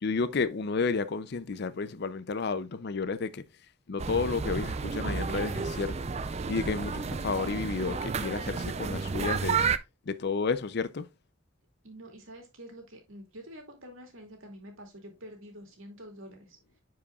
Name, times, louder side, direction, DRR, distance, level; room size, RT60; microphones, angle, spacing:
voice 1, 0.0-3.4 3.9-6.0 6.5-9.6 10.1-11.1, left 4 dB, 50° left, 0.5 m, -31 dB
sound 1, 4.0-9.8, right 5 dB, 30° right, 0.4 m, -31 dB
voice 2, 11.8-16.6, equal, 70° right, 2.3 m, -47 dB
10.0 x 4.9 x 2.3 m
head